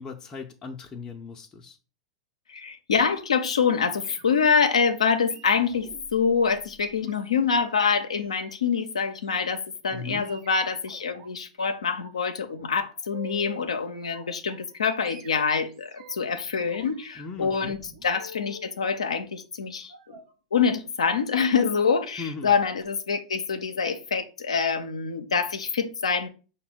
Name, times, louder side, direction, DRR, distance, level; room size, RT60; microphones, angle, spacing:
voice 1, 0.0-1.8 9.9-10.3 17.2-17.8 22.2-22.5, left 4 dB, 20° left, 0.5 m, -38 dB
voice 2, 2.5-20.1 20.5-26.3, left 6 dB, 85° left, 0.4 m, -25 dB
sound 1, 4.0-4.6 5.2-7.7 8.2-8.5 9.2-9.5 10.2-11.3 11.7-12.2 12.5-13.7 14.1-14.7 15.0-16.3 16.6-18.7 19.9-20.3 21.0-21.2 21.5-21.7 22.0-22.2 22.5-22.6, right 3 dB, 70° right, 0.8 m, -49 dB
5.6 x 2.1 x 4.0 m
hypercardioid pair, 95°, 3 cm